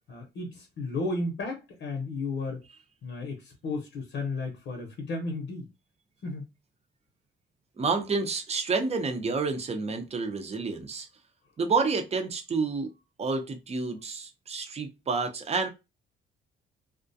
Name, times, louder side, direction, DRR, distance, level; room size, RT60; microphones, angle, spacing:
voice 1, 0.1-2.6 3.0-5.7 6.2-6.5, left 3 dB, 70° left, 0.8 m, -33 dB
voice 2, 7.8-11.1 11.6-12.9 13.2-15.7, right 4 dB, 30° right, 0.6 m, -29 dB
2.3 x 2.1 x 2.6 m
cardioid pair, 90°, 20 cm